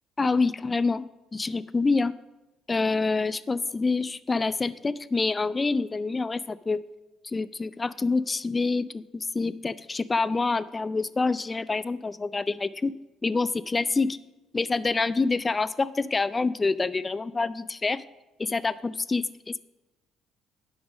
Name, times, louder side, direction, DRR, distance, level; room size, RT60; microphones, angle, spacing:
voice 1, 0.2-1.0 1.3-2.1 2.7-6.8 7.2-12.9 13.2-14.2 14.5-18.0 18.4-19.6, left 3 dB, 25° left, 17 dB, 0.4 m, -27 dB
8.1 x 5.3 x 6.2 m, 1.0 s
supercardioid pair, 70°, 0 cm